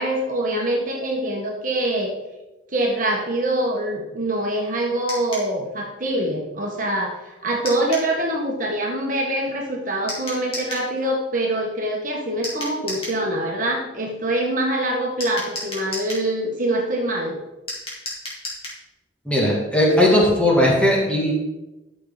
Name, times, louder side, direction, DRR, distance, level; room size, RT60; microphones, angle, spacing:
voice 1, 0.0-2.1 2.7-17.4, right 1 dB, 45° right, -1 dB, 1.6 m, -24 dB
sound 1, 5.1-5.5 7.6-8.1 10.1-10.9 12.4-13.2 15.2-16.3 17.7-18.8, left 2 dB, 30° left, 3.3 m, -32 dB
voice 2, 19.3-21.3, left 1 dB, 5° left, -4 dB, 2.5 m, -17 dB
13.0 x 6.6 x 4.1 m, 1.0 s
head